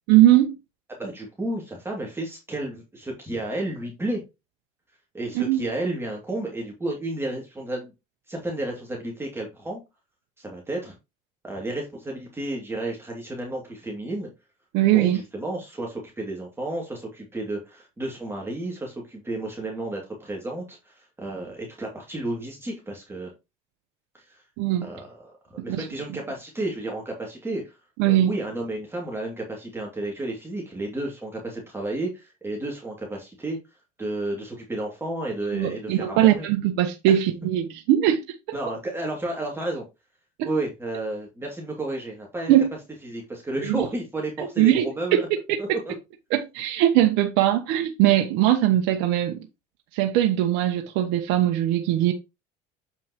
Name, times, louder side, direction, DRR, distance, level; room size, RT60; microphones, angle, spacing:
voice 1, 0.1-0.6 5.3-5.6 14.7-15.2 24.6-24.9 25.7-25.8 28.0-28.3 35.5-38.2 40.4-40.5 42.5-42.7 43.6-43.8 44.4-45.2 45.5-45.6 46.3-49.4 49.9-52.1, right 13 dB, 75° right, 1.0 m, -20 dB
voice 2, 1.0-4.2 5.1-7.9 8.3-9.8 10.4-10.9 11.4-14.3 14.9-23.3 24.1-24.4 24.8-27.8 28.1-33.6 34.0-36.5 38.5-39.8 40.4-42.6 43.0-45.3 45.6-45.9, right 2 dB, 15° right, 2.4 m, -32 dB
7.6 x 5.5 x 3.0 m
supercardioid pair, 100°, 17 cm